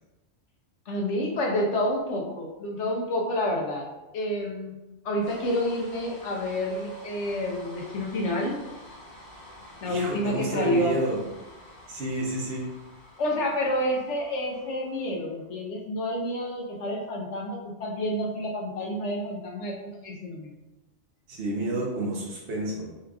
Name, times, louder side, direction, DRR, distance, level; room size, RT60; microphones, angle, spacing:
voice 1, 0.9-3.9 4.1-4.7 5.0-8.6 9.8-11.0 13.2-20.5, left 1 dB, 85° left, -1 dB, 1.2 m, -29 dB
sound 1, 5.2-15.5, left 1 dB, 55° left, 1.3 m, -49 dB
voice 2, 9.8-11.2 11.9-12.7 21.3-22.9, right 1 dB, 60° right, -4 dB, 1.0 m, -30 dB
4.9 x 4.3 x 2.3 m, 1.0 s
omnidirectional pair, 1.2 m